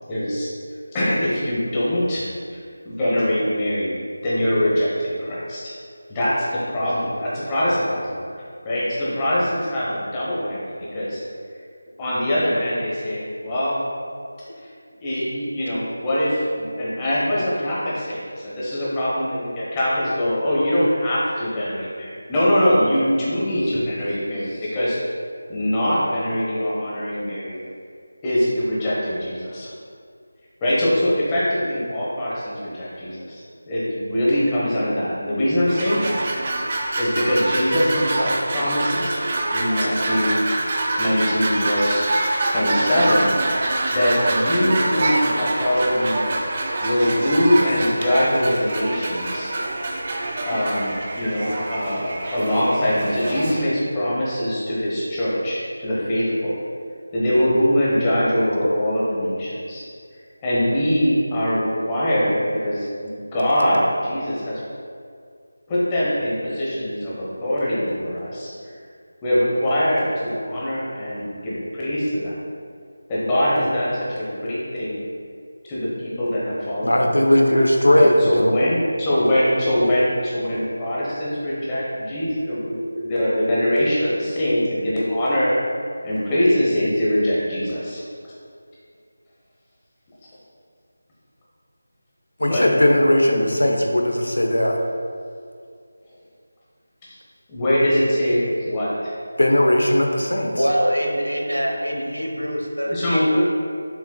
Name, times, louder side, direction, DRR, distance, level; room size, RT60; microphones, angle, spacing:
voice 1, 0.1-0.5 0.9-2.2 2.5-2.6 2.8-4.0 4.2-5.7 6.1-8.2 8.6-11.2 12.0-13.8 15.0-25.0 25.5-27.6 28.2-29.7 30.6-36.2 37.0-39.2 39.5-40.4 41.0-42.1 42.4-43.3 43.9-46.2 46.8-49.5 50.4-56.6 57.1-59.8 60.4-64.6 65.7-68.5 69.2-70.0 70.4-72.3 73.1-75.0 75.7-77.1 78.0-85.5 86.0-88.0 92.5-92.7 97.5-99.2 102.8-103.4, equal, 15° left, -8 dB, 1.2 m, -22 dB
sound 1, 35.7-53.6, right 2 dB, 30° right, 0.5 m, -25 dB
voice 2, 76.8-78.5 92.4-94.8 99.4-100.6, left 1 dB, 70° left, 2 dB, 0.8 m, -18 dB
voice 3, 100.6-103.4, equal, 85° right, 0 dB, 1.0 m, -24 dB
7.2 x 5.8 x 2.3 m, 2.2 s
figure-of-eight pair, 165°, 0 cm